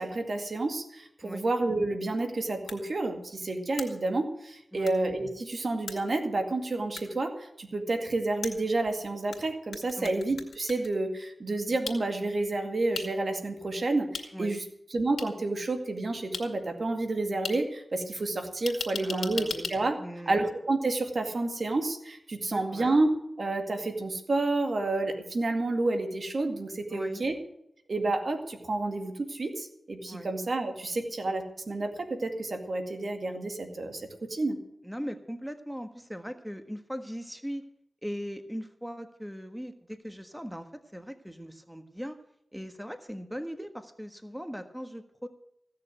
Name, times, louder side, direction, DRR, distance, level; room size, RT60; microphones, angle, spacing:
voice 1, 0.0-14.6 14.9-20.0 20.3-23.1 23.4-27.4 27.9-34.6, right 2 dB, 60° right, 5 dB, 2.3 m, -30 dB
sound 1, 2.7-2.8 3.8-3.9 4.9-5.0 5.9-6.0 7.0-7.1 8.4-9.4 9.7-10.9 11.9-12.0 12.9-13.1 14.1-14.2 15.2-15.3 16.3-16.4 17.4-17.5 18.7-19.7, left 5 dB, 85° left, 2.1 m, -36 dB
voice 2, 19.0-19.7 20.0-20.4 22.5-23.0 26.9-27.2 30.1-30.3 34.8-37.6 38.0-42.2 42.5-45.3, equal, 5° right, 7 dB, 1.5 m, -39 dB
16.0 x 6.7 x 9.2 m, 0.78 s
cardioid pair, 45°, 0 cm